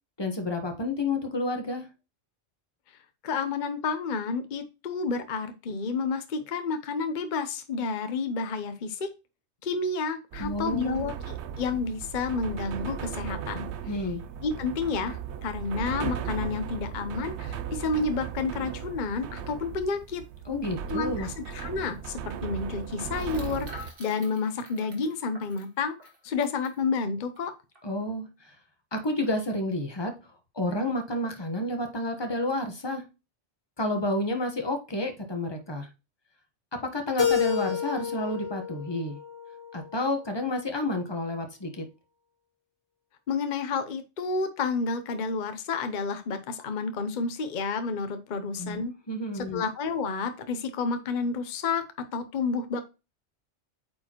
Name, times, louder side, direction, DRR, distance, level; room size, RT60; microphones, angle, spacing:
voice 1, 0.2-1.9 10.4-11.1 13.9-14.2 20.5-21.3 27.8-28.5 28.9-30.2 30.5-33.0 33.8-35.9 36.7-39.2 39.7-41.8 48.6-49.6, left 1 dB, 25° left, 1.2 m, -30 dB
voice 2, 3.2-9.1 9.6-14.0 14.4-20.2 20.9-26.0 26.2-27.5 43.3-48.9 49.3-51.8 52.1-52.8, left 4 dB, 50° left, 0.8 m, -30 dB
sound 1, 10.3-23.9, right 8 dB, 80° right, 0.9 m, -37 dB
sound 2, 21.3-21.4 21.5-21.7 23.1-26.8 27.4-27.5 27.7-28.0, equal, 55° right, 2.0 m, -48 dB
Keyboard (musical), 37.2-40.1, left 8 dB, 90° left, 1.7 m, -30 dB
8.6 x 4.8 x 3.0 m
omnidirectional pair, 1.2 m